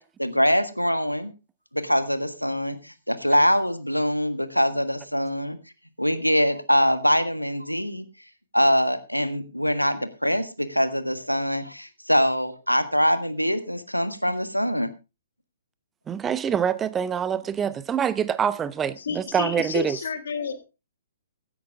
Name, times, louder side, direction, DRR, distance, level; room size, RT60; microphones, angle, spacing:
voice 1, 0.2-1.3 1.7-5.6 6.0-8.1 8.5-14.9, equal, 90° left, 1.5 m, -23 dB
voice 2, 16.1-20.0, right 8 dB, 15° right, 0.7 m, -25 dB
voice 3, 19.0-20.7, left 6 dB, 55° left, 1.8 m, -30 dB
16.5 x 10.5 x 3.5 m
figure-of-eight pair, 120°, 0 cm